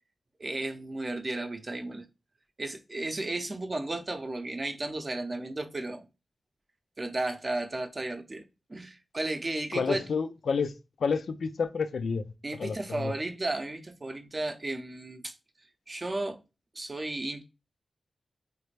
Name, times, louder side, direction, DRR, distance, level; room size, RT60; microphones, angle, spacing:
voice 1, 0.4-2.1 2.6-6.1 7.0-10.0 12.4-15.3 15.9-16.4 16.7-17.4, right 2 dB, 30° right, 0.6 m, -34 dB
voice 2, 9.7-12.3 12.6-13.1, left 5 dB, 80° left, 0.4 m, -30 dB
3.2 x 2.4 x 3.2 m
wide cardioid pair, 110°, 0 cm